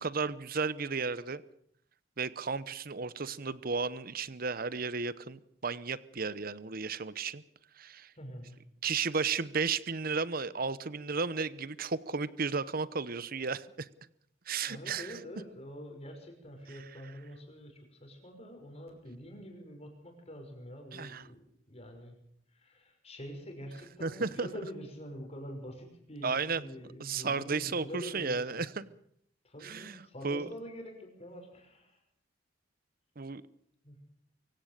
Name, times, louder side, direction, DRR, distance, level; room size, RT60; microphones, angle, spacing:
voice 1, 0.0-1.4 2.2-7.4 7.8-8.1 8.8-13.9 14.5-15.2 20.9-21.2 24.0-24.5 26.2-26.6 27.0-28.9 29.6-30.5 33.2-33.4, right 4 dB, 50° right, 0.9 m, -34 dB
voice 2, 8.1-8.6 14.7-22.2 22.5-28.7 29.4-32.0 33.8-34.0, equal, 35° left, 5.9 m, -46 dB
24.0 x 17.0 x 6.7 m
head